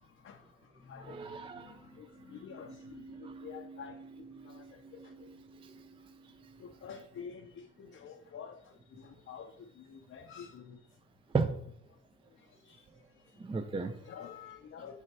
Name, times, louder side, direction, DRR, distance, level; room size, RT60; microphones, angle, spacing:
voice 1, 0.2-0.5 0.7-5.4 6.6-10.8 12.5-12.8 13.3-13.4 14.0-15.0, left 7 dB, 45° left, 4 dB, 0.6 m, -49 dB
voice 2, 1.0-5.8 11.3-11.6 13.4-14.0, right 4 dB, 20° right, 8 dB, 0.4 m, -38 dB
5.5 x 5.1 x 4.6 m, 0.67 s
cardioid pair, 90°, 30 cm